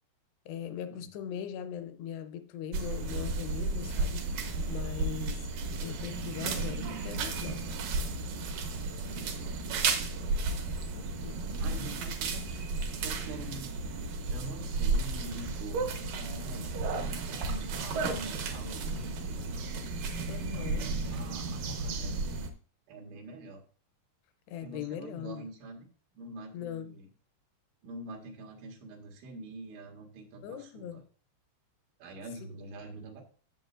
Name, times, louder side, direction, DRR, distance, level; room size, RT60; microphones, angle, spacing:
voice 1, 0.5-5.5 5.8-7.7 9.0-9.1 10.9-11.4 20.3-20.9 24.5-25.5 26.5-26.9 30.4-31.0 32.4-32.5, left 9 dB, 80° left, 2.6 m, -40 dB
sound 1, 2.7-22.5, right 3 dB, 70° right, 2.1 m, -33 dB
voice 2, 8.9-9.4 11.0-12.5 13.0-13.7 14.3-19.6 20.5-22.5 22.9-23.6 24.6-25.9 26.1-27.1 27.8-31.0 32.0-33.2, right 2 dB, 90° right, 4.2 m, -45 dB
16.0 x 7.2 x 2.5 m
omnidirectional pair, 5.3 m